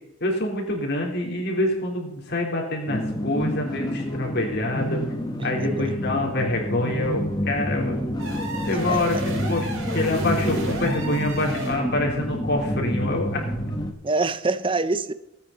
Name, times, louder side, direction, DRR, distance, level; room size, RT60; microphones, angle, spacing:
voice 1, 0.2-5.0 5.4-8.0 8.7-13.4, left 1 dB, 50° left, 0 dB, 3.7 m, -26 dB
sound 1, 2.9-13.9, equal, 20° left, 1.4 m, -28 dB
voice 2, 5.4-5.9 8.9-9.0 14.0-15.1, right 3 dB, 25° right, 14 dB, 0.6 m, -25 dB
sound 2, 8.2-11.9, right 2 dB, 60° right, 4.8 m, -34 dB
18.5 x 9.2 x 4.1 m, 0.89 s
head